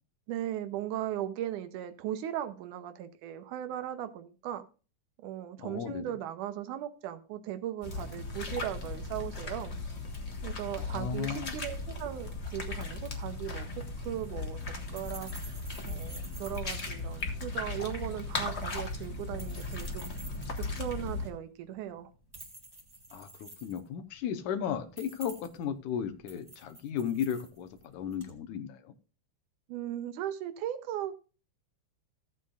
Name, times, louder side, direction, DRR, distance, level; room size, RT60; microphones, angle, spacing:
voice 1, 0.3-4.6 5.2-9.8 10.4-15.3 15.9-20.1 20.6-22.1 29.7-31.2, right 11 dB, 80° right, 2.2 m, -38 dB
voice 2, 5.6-6.1 10.8-11.5 23.1-28.9, left 8 dB, 80° left, 2.3 m, -35 dB
sound 1, 7.8-21.3, left 3 dB, 50° left, 0.7 m, -37 dB
sound 2, 13.8-28.4, right 2 dB, 10° right, 2.0 m, -52 dB
15.5 x 8.5 x 2.4 m
omnidirectional pair, 3.6 m